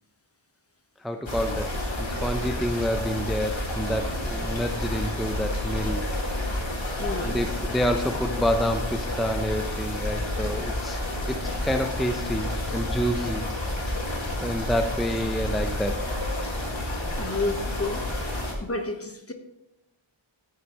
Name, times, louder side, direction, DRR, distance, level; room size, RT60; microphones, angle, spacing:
voice 1, 1.0-1.7 2.0-6.0 6.5-11.0 11.3-13.5 14.4-16.0, equal, ahead, 5 dB, 0.7 m, -28 dB
sound 1, 1.3-18.5, left 1 dB, 65° left, 2.1 m, -30 dB
voice 2, 7.0-7.4 17.1-18.1 18.6-19.3, left 2 dB, 30° left, 6 dB, 1.1 m, -30 dB
14.5 x 6.7 x 3.0 m, 0.86 s
wide cardioid pair, 55°, 50 cm